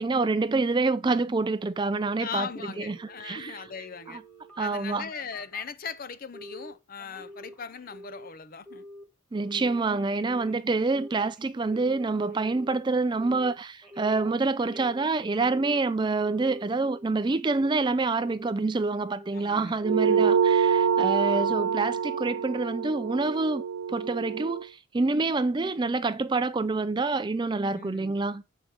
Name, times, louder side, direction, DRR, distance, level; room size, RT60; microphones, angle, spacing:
voice 1, 0.0-2.5 2.8-3.6 4.1-4.2 4.6-5.1 9.3-23.6 23.9-28.4, right 3 dB, 20° right, 0.3 m, -27 dB
voice 2, 2.2-4.2 4.6-8.9 19.3-19.7 20.0-20.3 21.3-21.6 27.7-28.2, left 6 dB, 40° left, 0.6 m, -39 dB
Telephone, 2.4-5.7 6.3-6.7 7.0-8.3 8.7-9.0 9.4-12.8 13.2-13.5 13.8-15.9 16.3-17.1 17.5-17.9 18.2-18.6 19.0-19.4 19.7-19.8, left 1 dB, 5° left, 1.8 m, -47 dB
sound 1, 19.8-24.6, right 7 dB, 85° right, 0.4 m, -25 dB
7.4 x 5.1 x 4.6 m
head